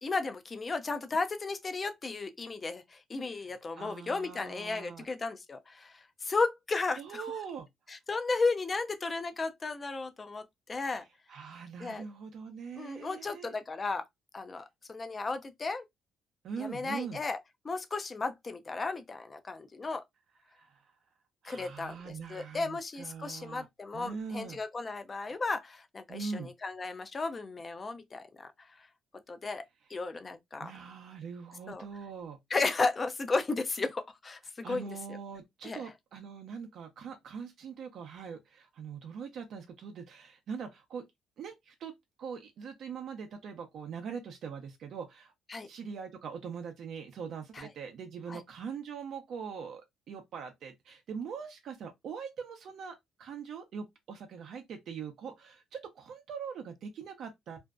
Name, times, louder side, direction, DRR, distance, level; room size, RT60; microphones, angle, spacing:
voice 1, 0.0-7.3 7.9-11.0 11.8-12.0 12.8-14.1 14.3-15.8 16.6-17.4 17.6-20.0 21.4-28.5 28.8-28.9 29.3-29.6 29.9-30.7 31.7-31.8 32.5-35.2 35.6-35.9 45.5-45.7 47.5-47.7 48.3-48.4, left 3 dB, 35° left, 0.5 m, -34 dB
voice 2, 3.8-5.1 7.0-7.7 11.3-13.5 16.4-17.2 20.5-20.8 21.4-23.7 23.9-24.6 26.1-26.5 30.6-32.4 34.6-41.0 41.4-41.9 42.2-45.3 45.6-57.6, right 6 dB, 65° right, 0.5 m, -42 dB
2.5 x 2.1 x 2.3 m
supercardioid pair, 80°, 0 cm